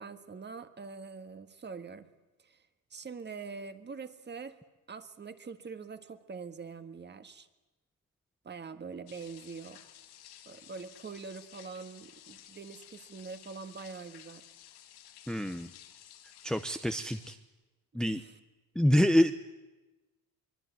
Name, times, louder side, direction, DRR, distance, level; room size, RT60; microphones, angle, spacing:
voice 1, 0.0-2.1 2.4-4.6 4.9-7.5 8.4-9.8 10.4-14.4 17.9-18.3, right 5 dB, 25° right, 9 dB, 1.7 m, -44 dB
sound 1, 9.1-17.4, left 11 dB, 90° left, 2.6 m, -54 dB
voice 2, 15.3-15.7 16.4-17.4 17.9-18.2 18.7-19.3, equal, ahead, 9 dB, 0.8 m, -26 dB
24.0 x 23.5 x 9.5 m, 1.1 s
cardioid pair, 145°, 38 cm